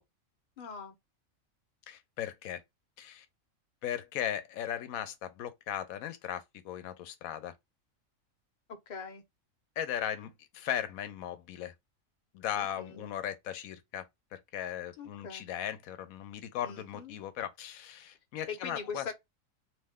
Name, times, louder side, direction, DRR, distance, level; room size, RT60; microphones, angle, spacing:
voice 1, 0.6-0.9 8.7-9.2 12.6-13.1 15.0-15.4 16.6-17.1 18.5-19.1, left 5 dB, 45° left, 0.7 m, -42 dB
voice 2, 1.9-2.6 3.0-3.3 3.8-7.5 9.8-11.7 12.3-14.0 14.3-19.1, left 10 dB, 85° left, 1.0 m, -37 dB
2.9 x 2.1 x 3.5 m
omnidirectional pair, 1.4 m